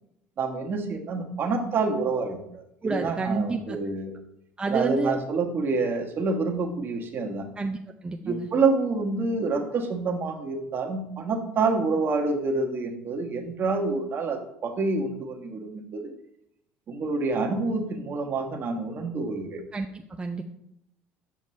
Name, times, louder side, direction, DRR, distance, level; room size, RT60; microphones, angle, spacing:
voice 1, 0.4-4.1 4.7-7.5 8.2-16.1 16.9-19.6, right 3 dB, 45° right, 3 dB, 1.3 m, -27 dB
voice 2, 2.8-3.8 4.6-5.2 7.6-7.8 8.0-8.5 19.7-20.4, right 3 dB, 20° right, 3 dB, 0.5 m, -29 dB
7.2 x 6.4 x 3.2 m, 0.78 s
hypercardioid pair, 75°, 5 cm